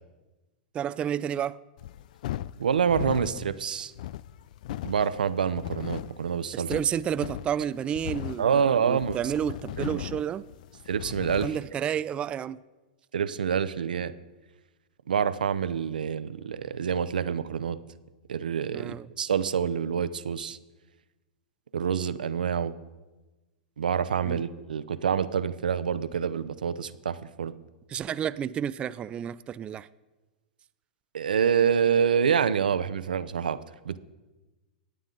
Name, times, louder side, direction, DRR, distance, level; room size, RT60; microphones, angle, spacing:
voice 1, 0.7-1.6 6.5-10.4 11.3-12.6 18.7-19.1 24.2-24.4 27.9-29.9, right 9 dB, 25° right, 14 dB, 0.3 m, -31 dB
sound 1, 1.8-11.7, left 13 dB, 65° left, 0.3 m, -38 dB
voice 2, 2.6-3.9 4.8-6.7 8.4-9.2 9.8-10.0 10.9-11.5 13.1-14.1 15.1-17.8 18.3-20.6 21.7-22.7 23.8-27.5 31.1-33.6 33.8-34.0, right 7 dB, 90° right, 13 dB, 0.7 m, -27 dB
23.0 x 9.2 x 3.8 m, 1.1 s
hypercardioid pair, 120°, 5 cm